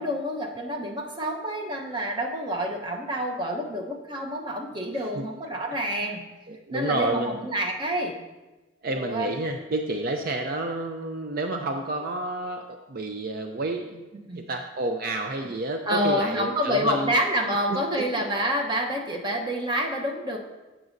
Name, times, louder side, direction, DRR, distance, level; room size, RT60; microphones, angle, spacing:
voice 1, 0.0-6.2 6.7-8.2 8.9-9.3 14.1-14.4 15.8-20.4, equal, 25° right, 1 dB, 0.9 m, -28 dB
voice 2, 6.5-7.4 8.8-17.1 17.7-17.8 19.3-19.4, right 2 dB, 50° right, 4 dB, 0.5 m, -30 dB
15.5 x 6.1 x 2.6 m, 1.1 s
head